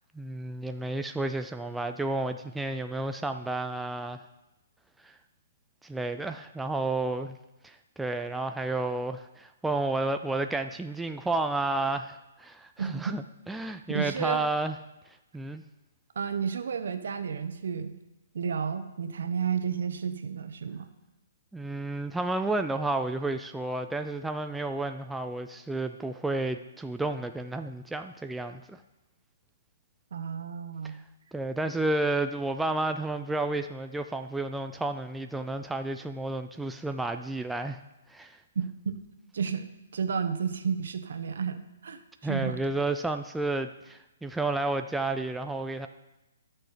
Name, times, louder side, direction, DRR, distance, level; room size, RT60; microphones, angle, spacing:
voice 1, 0.1-4.2 5.0-5.2 5.8-7.4 7.6-14.8 15.3-15.6 21.5-28.8 30.8-31.0 31.3-37.8 38.1-38.4 42.2-45.9, right 2 dB, 5° right, 6 dB, 0.3 m, -31 dB
voice 2, 12.8-13.2 13.9-14.4 16.1-17.9 18.3-20.9 30.1-31.0 38.5-39.0 39.3-39.6 39.9-42.6, right 6 dB, 70° right, 9 dB, 1.0 m, -32 dB
13.0 x 6.2 x 5.0 m, 0.98 s
hypercardioid pair, 160°, 0 cm